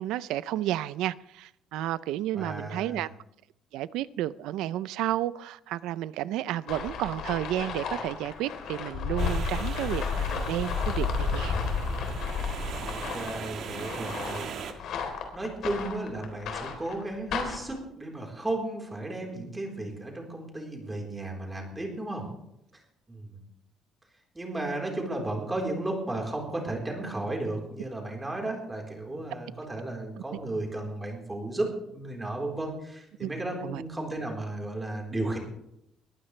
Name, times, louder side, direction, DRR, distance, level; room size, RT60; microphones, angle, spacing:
voice 1, 0.0-3.1 3.7-11.6 33.2-33.3 33.6-33.8, right 13 dB, 85° right, 0.5 m, -32 dB
voice 2, 2.4-3.1 12.8-14.8 15.3-22.3 23.1-23.4 24.3-35.4, right 2 dB, 10° right, 4.0 m, -34 dB
sound 1, 6.7-17.8, left 5 dB, 65° left, 3.6 m, -32 dB
sound 2, 9.2-14.7, right 7 dB, 55° right, 1.8 m, -40 dB
22.5 x 14.5 x 3.3 m
cardioid pair, 150°, 0 cm